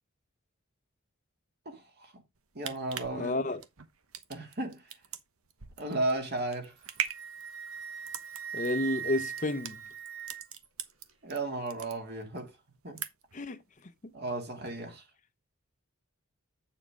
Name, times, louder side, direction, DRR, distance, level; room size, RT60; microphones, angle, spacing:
voice 1, 1.7-2.2 2.5-3.4 4.3-4.8 5.8-6.7 11.2-12.5 12.8-13.0 14.1-15.0, right 2 dB, 50° right, 2.5 m, -34 dB
sound 1, 2.4-11.4 11.7-12.4 12.7-13.4 13.8-13.9, right 9 dB, 85° right, 1.1 m, -40 dB
voice 2, 3.1-3.6 8.5-9.8 13.3-13.6, left 2 dB, 35° left, 0.7 m, -31 dB
Wind instrument woodwind instrument, 6.7-10.6, right 7 dB, 65° right, 1.8 m, -40 dB
8.3 x 7.2 x 3.6 m
head